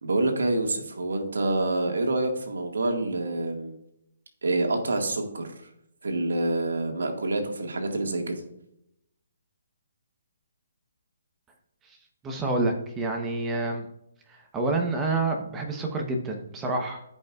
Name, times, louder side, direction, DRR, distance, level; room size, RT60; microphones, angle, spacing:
voice 1, 0.0-3.8 4.4-5.5 6.0-8.3, right 2 dB, 90° right, 3 dB, 1.8 m, -27 dB
voice 2, 12.2-13.8 14.5-17.0, right 2 dB, 15° right, 2 dB, 1.0 m, -28 dB
15.0 x 5.4 x 2.4 m, 0.79 s
hypercardioid pair, 160°, 0 cm